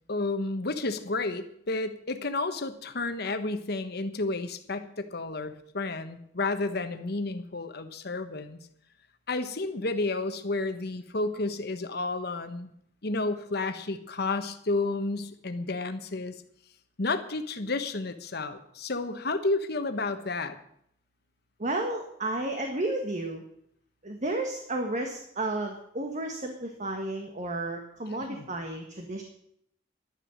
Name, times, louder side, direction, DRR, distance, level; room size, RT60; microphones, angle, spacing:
voice 1, 0.1-8.6 9.3-12.7 13.0-16.3 17.0-20.6 28.3-28.5, left 3 dB, 60° left, 8 dB, 1.2 m, -31 dB
voice 2, 21.6-23.4 24.0-29.2, right 2 dB, 45° right, 3 dB, 1.5 m, -32 dB
11.5 x 11.5 x 6.4 m, 0.71 s
head